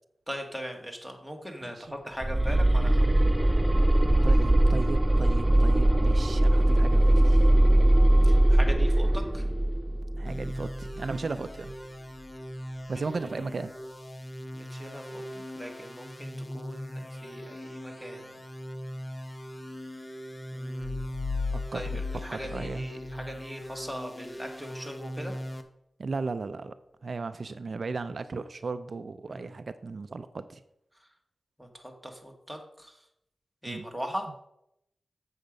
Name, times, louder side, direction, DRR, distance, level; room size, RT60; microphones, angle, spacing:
voice 1, 0.3-3.2 8.2-9.4 12.9-13.0 14.5-18.4 20.5-21.0 21.7-25.3 29.3-29.6 31.6-33.0 33.6-34.3, equal, ahead, 3 dB, 1.8 m, -40 dB
voice 2, 1.6-2.0 4.2-7.5 10.2-11.7 12.9-13.7 21.7-22.0 22.3-22.8 26.0-26.7 27.0-30.6 33.7-33.9, right 4 dB, 60° right, 12 dB, 0.4 m, -36 dB
sound 1, 2.2-11.1, right 1 dB, 15° right, 0.7 m, -21 dB
sound 2, 10.3-25.6, equal, 25° left, 1.1 m, -40 dB
sound 3, 20.8-23.4, left 4 dB, 90° left, 0.4 m, -35 dB
7.9 x 6.5 x 5.2 m, 0.78 s
wide cardioid pair, 70°, 0 cm